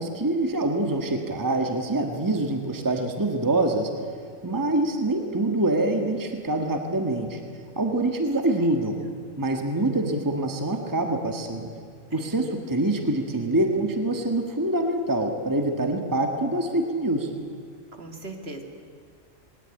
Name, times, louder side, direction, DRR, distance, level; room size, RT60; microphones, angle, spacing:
voice 1, 0.0-3.9 4.4-7.4 7.8-9.0 9.4-11.7 12.1-17.3, right 2 dB, 15° right, 4 dB, 1.5 m, -25 dB
voice 2, 12.1-12.4 18.0-18.6, right 2 dB, 50° right, 4 dB, 2.2 m, -39 dB
20.0 x 18.0 x 10.0 m, 2.1 s
omnidirectional pair, 1.4 m